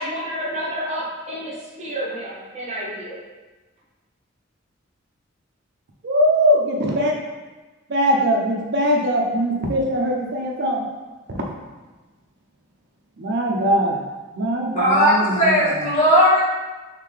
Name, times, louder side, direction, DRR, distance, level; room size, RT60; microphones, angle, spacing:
voice 1, 0.0-3.2, equal, 35° right, -6 dB, 1.0 m, -30 dB
voice 2, 6.0-7.1 7.9-10.8 11.3-11.4 13.2-14.0 14.3-15.8, equal, 55° right, 0 dB, 0.5 m, -21 dB
voice 3, 14.8-16.4, equal, 40° left, -8 dB, 1.2 m, -17 dB
3.7 x 3.2 x 3.2 m, 1.2 s
head